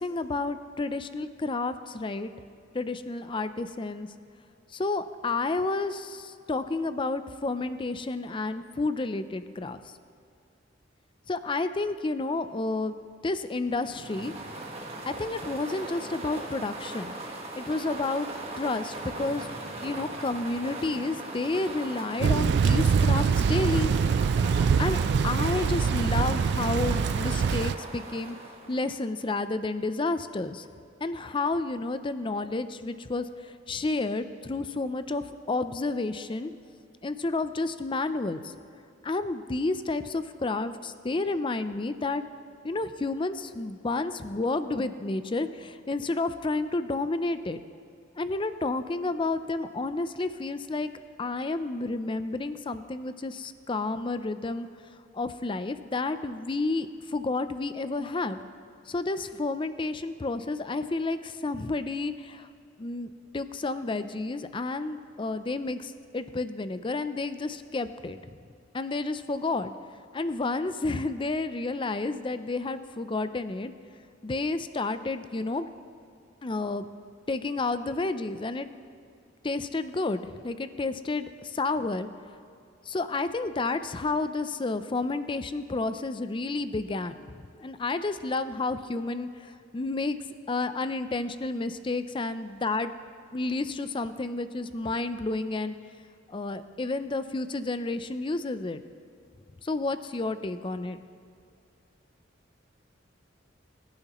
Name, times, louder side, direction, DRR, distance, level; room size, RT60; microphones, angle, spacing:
voice 1, 0.0-2.3 2.7-4.1 4.7-9.8 11.3-13.0 13.2-14.3 15.1-18.3 18.6-19.5 19.8-23.9 24.8-25.0 25.2-28.4 28.7-30.7 31.0-36.5 37.0-38.5 39.0-42.2 42.6-47.6 48.2-50.9 51.2-54.7 55.1-58.4 58.9-62.5 62.8-68.2 68.7-69.7 70.1-73.7 74.2-75.6 76.4-76.9 77.3-78.7 79.4-82.1 82.9-90.2 90.5-92.9 93.3-95.7 96.3-98.8 99.6-101.0, left 3 dB, 25° left, 11 dB, 0.5 m, -30 dB
sound 1, 13.7-29.1, right 2 dB, 35° right, 1.4 m, -39 dB
Thunder / Rain, 22.2-27.8, right 6 dB, 65° right, 0.3 m, -24 dB
23.0 x 10.5 x 3.0 m, 2.4 s
head